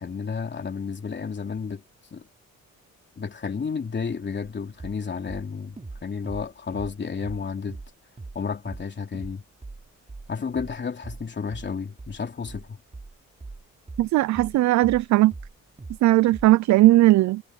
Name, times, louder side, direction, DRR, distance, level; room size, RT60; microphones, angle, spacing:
voice 1, 0.0-1.8 2.1-2.3 3.2-7.8 8.3-9.4 10.3-12.8, left 5 dB, 35° left, 3.3 m, -32 dB
sound 1, 4.8-5.0 5.3-7.4 7.7-8.4 8.7-8.9 9.1-9.4 9.6-15.1 15.3-16.0 16.3-16.5, right 3 dB, 20° right, 5.1 m, -40 dB
voice 2, 14.0-15.3 16.0-17.4, right 16 dB, 70° right, 0.5 m, -18 dB
cardioid pair, 90°, 30 cm